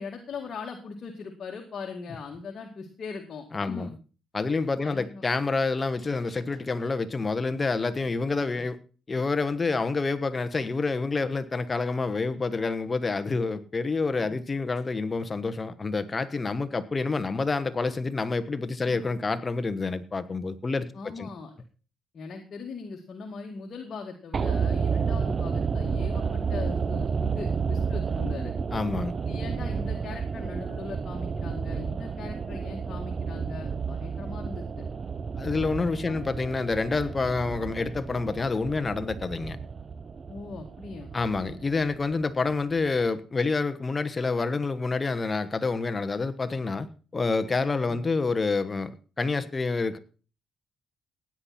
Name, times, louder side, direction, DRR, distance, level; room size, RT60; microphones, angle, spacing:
voice 1, 0.0-3.9 4.8-5.2 14.2-14.4 18.8-19.0 20.9-21.6 22.1-28.5 29.3-34.9 36.0-36.2 40.3-41.8 49.3-49.5, left 4 dB, 50° left, 2 dB, 2.2 m, -40 dB
voice 2, 3.5-4.0 4.3-8.8 9.1-21.3 28.7-29.2 35.4-39.6 41.1-46.9 47.1-48.9 49.2-50.0, left 3 dB, 30° left, 12 dB, 1.2 m, -28 dB
sound 1, 24.3-42.5 42.8-42.9, right 5 dB, 40° right, 0.7 m, -31 dB
16.0 x 10.0 x 4.3 m, 0.37 s
cardioid pair, 90°, 0 cm